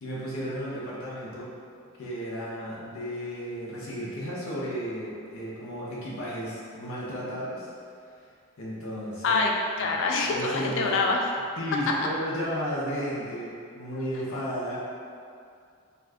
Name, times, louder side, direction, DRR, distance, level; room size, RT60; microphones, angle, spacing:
voice 1, 0.0-1.5 2.0-7.7 8.6-9.4 9.8-9.9 10.2-11.0 11.6-14.8, equal, 75° left, -7 dB, 0.7 m, -33 dB
voice 2, 9.2-11.3 11.9-12.0, left 3 dB, 60° left, 0 dB, 0.4 m, -25 dB
2.6 x 2.4 x 3.4 m, 2.3 s
head